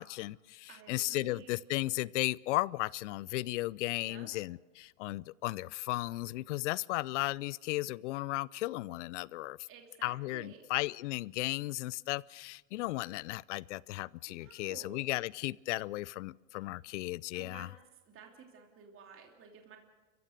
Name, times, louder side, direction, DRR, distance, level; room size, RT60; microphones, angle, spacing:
voice 1, 0.0-9.6 10.0-17.7, left 19 dB, 65° left, 24 dB, 0.6 m, -35 dB
voice 2, 0.7-1.6 4.0-4.3 9.7-10.7 14.3-15.1 17.3-17.7 18.1-19.8, right 6 dB, 35° right, 2 dB, 3.1 m, -53 dB
29.5 x 15.5 x 6.6 m, 1.3 s
hypercardioid pair, 105°, 38 cm